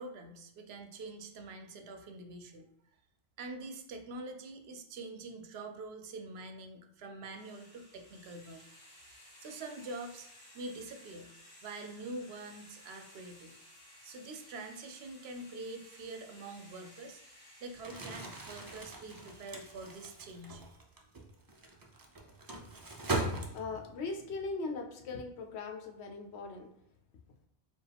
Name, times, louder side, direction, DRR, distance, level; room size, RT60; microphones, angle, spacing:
voice 1, 0.0-2.7 3.4-8.6 9.4-10.3 10.5-11.3 11.6-13.5 14.0-17.2 17.6-20.6, right 2 dB, 75° right, 5 dB, 0.8 m, -45 dB
sound 1, 7.3-20.4, left 1 dB, 45° left, 1.5 m, -57 dB
Crumpling crinkling, 17.7-23.9, right 2 dB, 35° right, 0.3 m, -40 dB
voice 2, 23.5-26.7, left 3 dB, 85° left, 3 dB, 0.9 m, -39 dB
4.6 x 2.4 x 3.4 m, 0.75 s
omnidirectional pair, 1.1 m